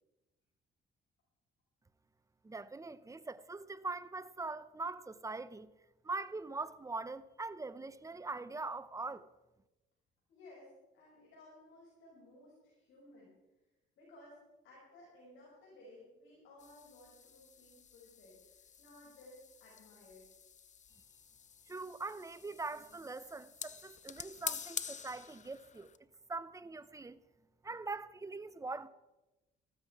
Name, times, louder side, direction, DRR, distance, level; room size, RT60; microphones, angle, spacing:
voice 1, 2.4-5.7 6.0-9.3 21.7-25.9 26.3-27.2 27.6-28.9, right 3 dB, 15° right, 0.7 m, -42 dB
voice 2, 10.3-13.3 14.0-20.3, left 1 dB, 85° left, 6.6 m, -58 dB
sound 1, 16.6-26.0, left 7 dB, 40° left, 0.6 m, -48 dB
14.5 x 13.5 x 4.8 m
cardioid pair, 90°, 20 cm